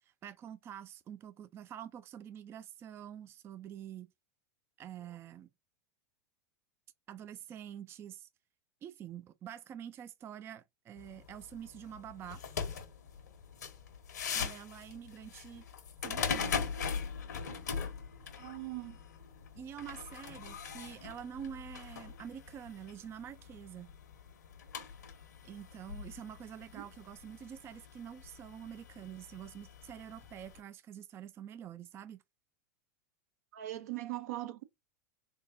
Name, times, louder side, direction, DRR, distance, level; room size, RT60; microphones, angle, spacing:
voice 1, 0.0-4.1 4.8-5.5 7.1-8.3 8.8-12.4 14.2-15.6 16.0-16.6 19.6-23.9 25.4-32.2, right 9 dB, 25° right, 0.3 m, -47 dB
sound 1, 11.0-30.6, left 6 dB, 80° left, 1.1 m, -42 dB
voice 2, 18.4-19.0 26.7-26.9 33.5-34.6, right 16 dB, 70° right, 0.6 m, -40 dB
3.5 x 3.4 x 2.5 m
hypercardioid pair, 95°, 9 cm